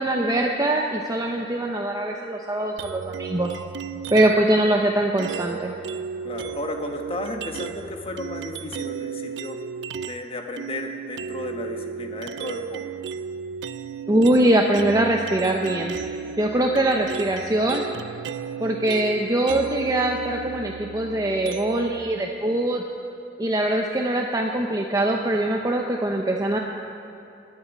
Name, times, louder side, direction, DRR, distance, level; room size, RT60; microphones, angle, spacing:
voice 1, 0.0-3.5 4.1-5.7 14.1-16.0 16.4-17.8 18.6-22.8 23.4-26.6, right 1 dB, 20° right, 1 dB, 0.7 m, -22 dB
sound 1, 2.8-4.5 5.2-10.3 10.6-22.0, right 7 dB, 75° right, 0.4 m, -34 dB
voice 2, 6.2-9.6 10.1-12.9, left 2 dB, 30° left, 4 dB, 1.2 m, -33 dB
11.0 x 8.5 x 9.3 m, 2.8 s
head